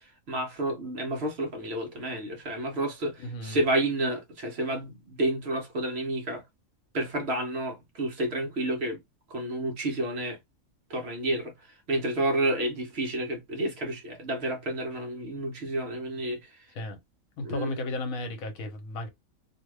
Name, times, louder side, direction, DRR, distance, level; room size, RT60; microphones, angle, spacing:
voice 1, 0.0-6.4 6.9-9.0 9.3-10.4 10.9-11.5 11.9-16.6 17.4-17.8, right 1 dB, 55° right, 0.9 m, -30 dB
voice 2, 3.2-3.6 16.7-17.0 17.4-19.1, left 2 dB, 75° left, 1.2 m, -34 dB
2.7 x 2.3 x 3.1 m
omnidirectional pair, 1.5 m